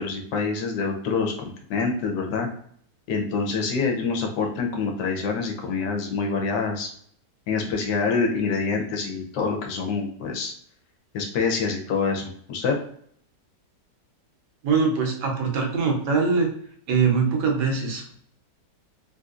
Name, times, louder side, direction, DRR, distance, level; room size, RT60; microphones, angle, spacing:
voice 1, 0.0-2.5 3.1-6.9 7.5-10.5 11.1-12.8, left 4 dB, 80° left, 3 dB, 1.3 m, -26 dB
voice 2, 14.6-16.5 16.9-18.2, right 5 dB, 80° right, 0 dB, 1.4 m, -22 dB
3.4 x 2.6 x 2.4 m, 0.62 s
omnidirectional pair, 1.8 m